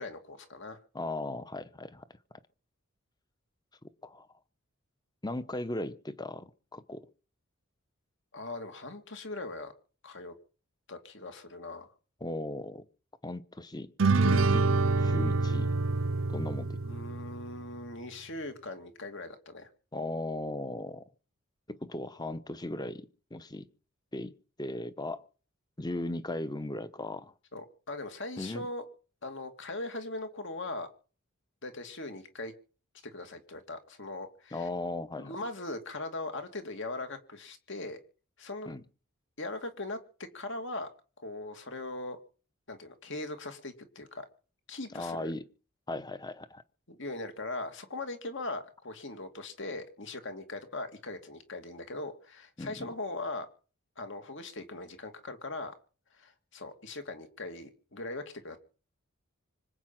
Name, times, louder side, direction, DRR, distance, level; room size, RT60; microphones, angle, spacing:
voice 1, 0.0-0.8 8.3-9.7 10.0-10.3 10.9-11.9 16.8-19.7 27.5-28.8 29.2-30.9 31.6-32.5 33.1-34.7 35.2-38.0 38.4-38.7 39.4-40.0 40.3-40.9 41.2-42.2 42.7-44.3 44.7-45.3 46.9-53.5 54.0-55.7 56.1-58.6, left 2 dB, 60° left, 2.6 m, -40 dB
voice 2, 0.9-2.1 4.0-4.3 5.2-7.1 12.2-12.9 13.2-15.7 16.3-16.8 19.9-21.0 21.7-23.0 23.3-23.7 24.1-25.2 25.8-27.3 28.4-28.6 34.5-35.4 38.7-38.8 44.9-45.4 45.9-46.6 52.6-52.9, left 2 dB, 20° left, 1.0 m, -37 dB
sound 1, 14.0-17.6, right 3 dB, 65° right, 0.7 m, -26 dB
25.5 x 8.7 x 5.9 m
head